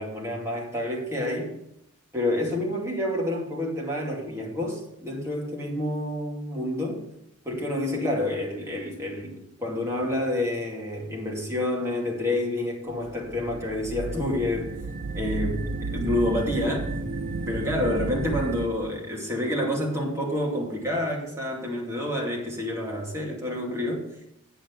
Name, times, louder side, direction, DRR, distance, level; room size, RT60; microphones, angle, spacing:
voice 1, 0.0-1.5 2.1-7.1 7.4-14.8 15.1-16.9 17.5-24.2, left 1 dB, 15° right, -2 dB, 2.5 m, -28 dB
sound 1, 12.9-18.7, right 3 dB, 45° right, 0.6 m, -32 dB
9.0 x 7.2 x 7.3 m, 0.80 s
head